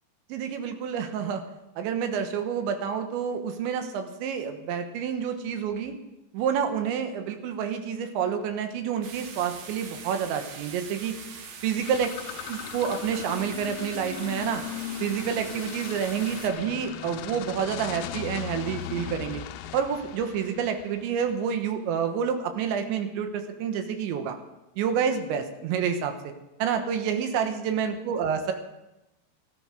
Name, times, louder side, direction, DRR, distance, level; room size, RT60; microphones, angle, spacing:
voice 1, 0.3-1.4 1.8-5.9 6.3-11.2 11.6-12.1 12.5-14.6 15.0-19.4 19.7-24.4 24.8-26.3 26.6-28.5, right 7 dB, 85° right, 6 dB, 3.5 m, -28 dB
sound 1, 9.0-16.5, right 5 dB, 65° right, 1.7 m, -43 dB
sound 2, 11.8-21.3, left 11 dB, 80° left, 2.4 m, -38 dB
14.5 x 13.0 x 6.5 m, 0.95 s
omnidirectional pair, 5.2 m